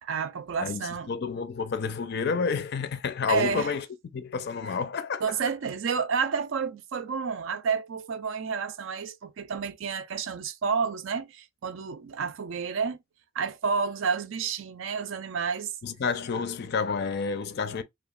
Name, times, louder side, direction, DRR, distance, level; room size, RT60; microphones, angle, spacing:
voice 1, 0.0-1.1 3.3-3.7 5.2-13.0 13.3-15.7, right 6 dB, 60° right, 0.4 m, -30 dB
voice 2, 0.6-3.9 4.1-5.4 15.8-17.8, left 5 dB, 50° left, 0.4 m, -30 dB
2.8 x 2.3 x 2.3 m
head